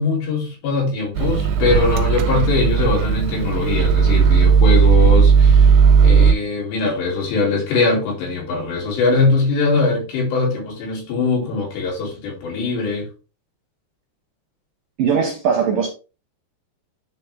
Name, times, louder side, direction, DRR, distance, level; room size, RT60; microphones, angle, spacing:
voice 1, 0.0-13.1, left 3 dB, 70° left, 5.1 m, -21 dB
Microwave oven, 1.2-6.3, right 6 dB, 85° right, 3.1 m, -14 dB
voice 2, 15.0-15.9, right 6 dB, 70° right, 2.2 m, -19 dB
10.0 x 4.2 x 3.5 m
omnidirectional pair, 5.2 m